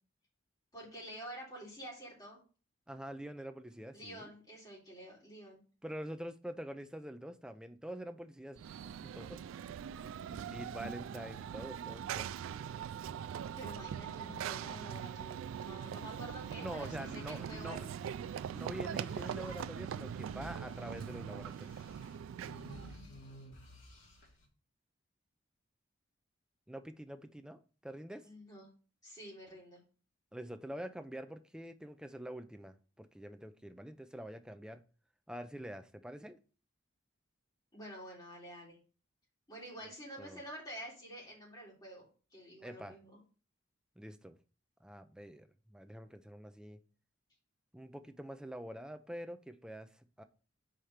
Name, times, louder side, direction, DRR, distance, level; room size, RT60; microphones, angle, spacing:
voice 1, 0.7-2.4 3.9-5.6 13.5-17.9 28.2-28.7 29.0-29.8 37.7-38.8 39.5-42.0 42.3-43.2, equal, 20° left, -4 dB, 3.1 m, -49 dB
voice 2, 2.9-4.3 5.8-9.4 10.3-12.3 16.6-17.9 18.5-21.8 26.7-28.3 30.3-34.8 35.3-36.4 40.2-40.4 42.6-43.0 44.0-44.4 44.8-46.8 47.7-50.2, equal, 5° right, 8 dB, 0.5 m, -46 dB
Run / Train, 8.5-23.0, right 8 dB, 90° right, 0.3 m, -42 dB
sound 1, 13.9-16.3 16.6-24.5, equal, 80° left, 2.5 m, -56 dB
5.0 x 4.5 x 5.6 m, 0.37 s
head